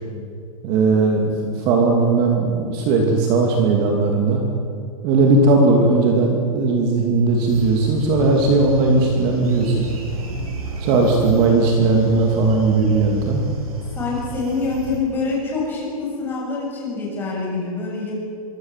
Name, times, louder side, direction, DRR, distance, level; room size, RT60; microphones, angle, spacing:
voice 1, 0.6-4.4 5.0-9.9 10.8-13.4, right 3 dB, 30° right, 1 dB, 2.7 m, -17 dB
sound 1, 7.5-15.0, right 3 dB, 90° right, 7.4 m, -31 dB
voice 2, 10.5-10.8 14.0-18.1, left 3 dB, 10° left, -4 dB, 7.4 m, -26 dB
24.5 x 24.5 x 7.6 m, 2.4 s
supercardioid pair, 170°, 18 cm